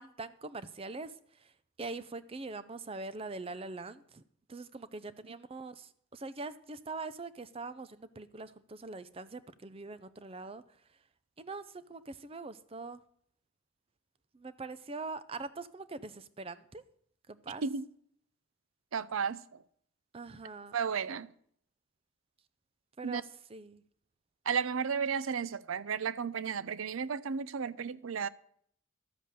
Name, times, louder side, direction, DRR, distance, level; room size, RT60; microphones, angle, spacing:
voice 1, 0.0-1.5 1.8-4.2 4.5-10.6 11.4-13.0 14.3-16.8 17.3-17.6 20.1-20.8 23.0-23.8, right 3 dB, 25° right, 0.5 m, -43 dB
voice 2, 18.9-19.6 20.7-21.3 23.0-23.2 24.5-28.3, right 6 dB, 75° right, 0.5 m, -33 dB
12.5 x 7.8 x 6.6 m
head